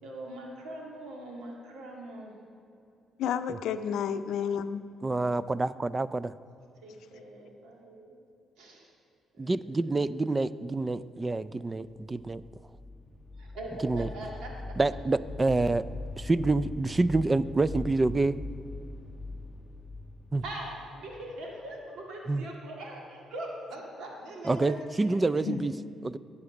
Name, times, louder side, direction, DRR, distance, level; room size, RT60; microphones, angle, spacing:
voice 1, 0.0-2.3 4.0-4.2 6.8-8.2 8.6-8.9 9.3-9.6 9.8-10.1 13.3-14.5 20.4-25.6, right 1 dB, 90° right, 0 dB, 1.9 m, -42 dB
voice 2, 3.2-4.8 25.5-25.9, left 8 dB, 80° left, 11 dB, 0.5 m, -31 dB
voice 3, 5.0-6.3 9.4-12.4 13.8-14.1 14.8-15.8 16.2-18.4 20.3-20.4 22.3-22.4 24.5-25.7 26.0-26.2, right 3 dB, 25° right, 17 dB, 0.3 m, -27 dB
sound 1, 12.0-21.8, left 2 dB, ahead, 0.9 m, -41 dB
11.5 x 8.5 x 5.9 m, 2.7 s
cardioid pair, 90°, 0 cm